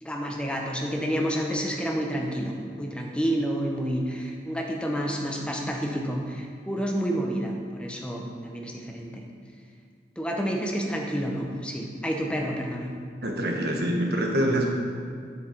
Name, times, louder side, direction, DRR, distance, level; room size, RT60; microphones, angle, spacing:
voice 1, 0.0-9.3 10.2-13.0, equal, 5° left, 0 dB, 0.7 m, -29 dB
voice 2, 13.2-14.7, right 1 dB, 60° right, 1 dB, 1.1 m, -25 dB
8.0 x 6.4 x 4.4 m, 2.2 s
head